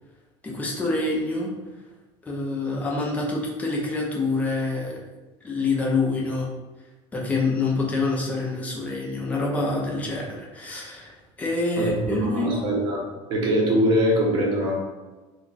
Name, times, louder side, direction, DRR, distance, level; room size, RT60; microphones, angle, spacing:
voice 1, 0.4-1.5 2.2-5.0 5.4-6.5 7.1-12.5, left 3 dB, 10° left, -2 dB, 0.5 m, -26 dB
voice 2, 11.8-13.0 13.3-14.7, equal, 35° right, -1 dB, 0.8 m, -22 dB
2.9 x 2.3 x 3.9 m, 1.2 s
cardioid pair, 180°, 13 cm